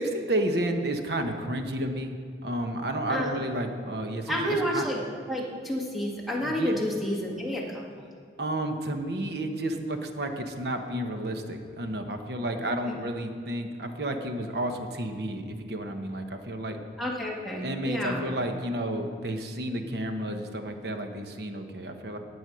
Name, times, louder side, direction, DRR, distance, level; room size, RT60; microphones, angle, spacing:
voice 1, 0.0-2.2 2.4-4.9 6.4-6.7 8.4-16.8 17.6-22.2, right 1 dB, 60° right, 5 dB, 1.1 m, -31 dB
voice 2, 4.3-5.0 5.3-8.0 12.9-13.0 17.0-18.3, equal, ahead, -3 dB, 1.8 m, -30 dB
17.5 x 6.2 x 6.3 m, 2.2 s
head